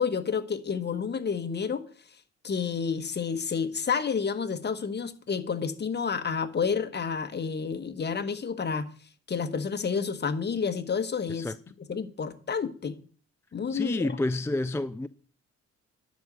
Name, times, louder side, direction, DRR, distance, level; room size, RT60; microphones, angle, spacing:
voice 1, 0.0-1.9 2.4-8.9 9.3-11.5 11.9-13.0 13.5-14.0, left 6 dB, 35° left, 1.3 m, -30 dB
voice 2, 13.7-15.1, left 2 dB, 10° left, 0.4 m, -29 dB
10.5 x 5.2 x 8.0 m
cardioid pair, 90°, 30 cm